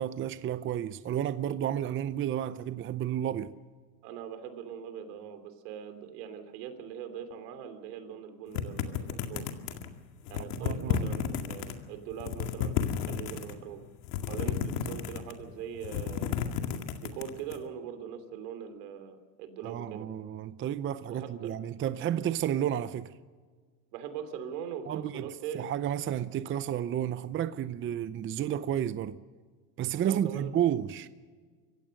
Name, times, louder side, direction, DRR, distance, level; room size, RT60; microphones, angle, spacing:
voice 1, 0.0-3.5 10.4-11.2 19.6-23.1 24.9-29.2 29.8-31.1, right 10 dB, 25° right, 0.6 m, -32 dB
voice 2, 4.0-9.4 10.3-13.8 14.3-16.4 17.0-20.1 21.1-21.5 23.9-25.7 30.0-30.5, right 8 dB, 80° right, 3.2 m, -41 dB
sound 1, 8.5-9.9 10.3-11.7 12.1-13.5 14.0-15.4 15.7-17.6, left 9 dB, 75° left, 2.2 m, -32 dB
26.0 x 16.0 x 6.5 m
supercardioid pair, 125°, 47 cm